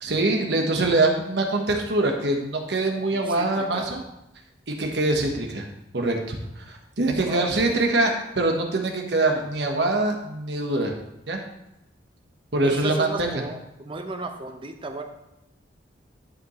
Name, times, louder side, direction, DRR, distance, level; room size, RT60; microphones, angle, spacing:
voice 1, 0.0-4.0 4.7-5.7 5.9-10.9 11.3-11.4 12.5-13.3, right 2 dB, 65° right, 2 dB, 1.3 m, -24 dB
voice 2, 3.1-4.1 7.3-7.8 12.6-15.0, right 2 dB, 30° right, 6 dB, 0.7 m, -35 dB
11.5 x 5.1 x 3.1 m, 0.89 s
head